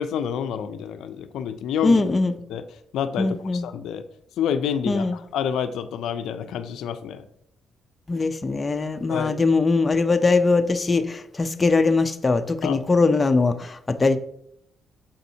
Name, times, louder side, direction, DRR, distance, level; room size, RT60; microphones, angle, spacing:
voice 1, 0.0-1.9 2.5-2.6 2.9-4.0 4.4-7.2 9.1-9.4 12.6-12.8, left 8 dB, 80° left, 10 dB, 0.4 m, -28 dB
voice 2, 1.8-2.4 3.2-3.7 4.9-5.2 8.1-14.2, left 3 dB, 25° left, 8 dB, 0.5 m, -21 dB
6.9 x 5.1 x 2.8 m, 0.72 s
cardioid pair, 90°, 0 cm